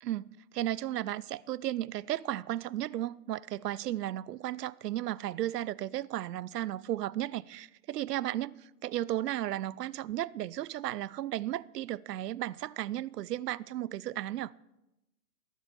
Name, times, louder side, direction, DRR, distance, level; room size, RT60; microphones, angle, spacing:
voice 1, 0.0-14.5, right 13 dB, 80° right, 0.6 m, -34 dB
19.0 x 7.4 x 6.7 m
hypercardioid pair, 155°, 48 cm